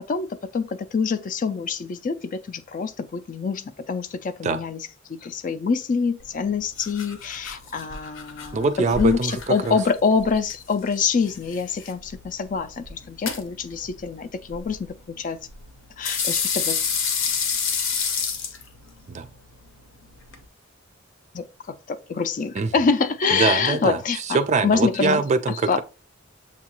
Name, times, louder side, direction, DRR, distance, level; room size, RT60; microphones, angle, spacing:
voice 1, 0.1-8.7 9.0-15.4 16.0-16.8 21.3-24.2 24.6-25.2 25.7-25.8, left 5 dB, 40° left, 0.4 m, -25 dB
sound 1, 6.2-20.4, left 6 dB, 65° left, 0.7 m, -31 dB
voice 2, 8.5-9.4 9.6-9.8 19.1-19.3 22.6-22.7 23.3-24.0 24.3-25.8, right 3 dB, 35° right, 0.3 m, -23 dB
7.0 x 2.4 x 2.9 m
head